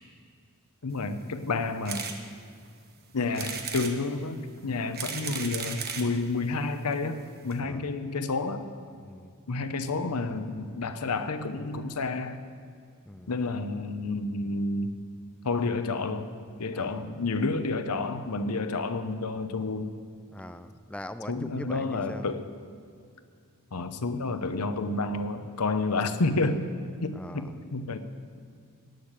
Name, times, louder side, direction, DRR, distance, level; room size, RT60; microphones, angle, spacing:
voice 1, 0.8-2.1 3.1-8.7 9.5-12.4 13.3-14.9 15.4-16.3 16.6-19.9 21.3-22.5 23.7-26.7 27.0-28.0, left 3 dB, 85° left, 10 dB, 0.9 m, -30 dB
sound 1, 1.9-2.2 2.7-2.8 3.3-3.9 4.7-6.1 6.9-7.0 7.2-7.3 7.5-7.6, right 6 dB, 45° right, 1.2 m, -35 dB
voice 2, 9.0-9.3 13.1-13.3 16.7-17.1 20.3-22.3 27.1-27.6, left 1 dB, 5° left, 10 dB, 0.4 m, -42 dB
17.0 x 6.6 x 9.0 m, 2.2 s
head